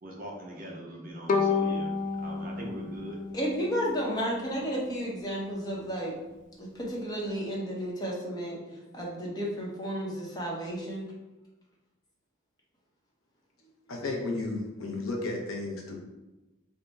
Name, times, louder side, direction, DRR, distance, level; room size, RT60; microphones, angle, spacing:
voice 1, 0.0-3.2, right 1 dB, 40° right, -1 dB, 0.7 m, -41 dB
Bowed string instrument, 1.3-4.4, left 4 dB, 35° left, 0.3 m, -30 dB
voice 2, 3.3-6.2 6.6-11.1, equal, 20° left, -4 dB, 0.8 m, -32 dB
voice 3, 13.9-16.0, left 2 dB, 70° left, 0 dB, 0.7 m, -33 dB
3.4 x 2.1 x 3.9 m, 1.0 s
head